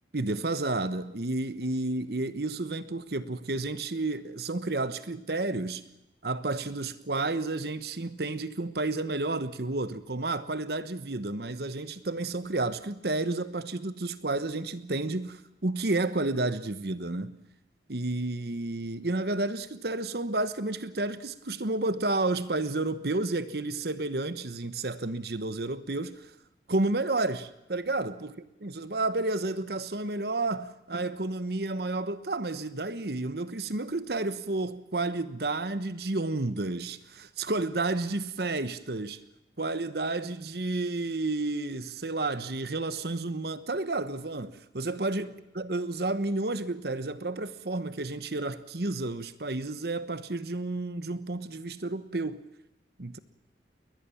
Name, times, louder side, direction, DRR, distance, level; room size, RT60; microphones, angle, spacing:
voice 1, 0.1-5.8 6.2-17.3 17.9-26.3 26.7-28.3 28.6-39.2 39.6-45.3 45.5-52.4 53.0-53.2, right 2 dB, 60° right, 1.1 m, -31 dB
21.5 x 20.0 x 7.2 m
head